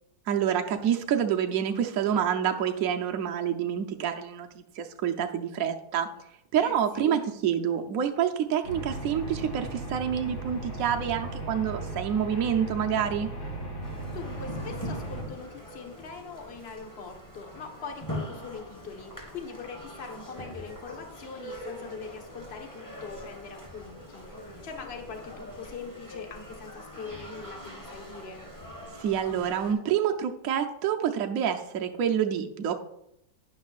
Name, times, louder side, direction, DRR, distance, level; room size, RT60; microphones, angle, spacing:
voice 1, 0.3-6.1 6.5-13.3 28.9-32.8, right 9 dB, 75° right, 4 dB, 0.8 m, -27 dB
voice 2, 6.6-7.2 14.1-28.4, left 5 dB, 35° left, 3 dB, 1.3 m, -42 dB
sound 1, 8.6-15.2, right 1 dB, 65° left, 3.0 m, -36 dB
sound 2, 13.8-29.7, left 1 dB, 10° left, 2.7 m, -42 dB
11.5 x 10.0 x 2.4 m, 0.79 s
omnidirectional pair, 2.3 m